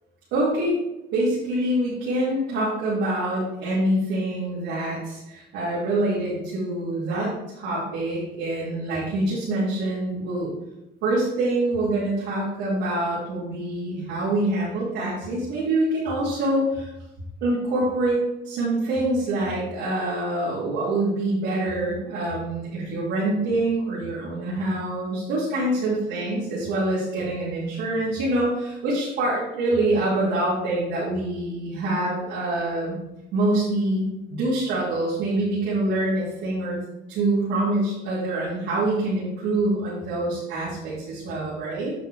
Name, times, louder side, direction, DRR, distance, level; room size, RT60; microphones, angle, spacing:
voice 1, 0.3-0.8 1.1-10.5 11.0-16.9 17.4-18.2 18.4-33.0 33.3-36.8 37.1-41.9, right 1 dB, 90° right, -9 dB, 3.1 m, -25 dB
8.9 x 6.3 x 3.6 m, 0.91 s
cardioid pair, 95°, 18 cm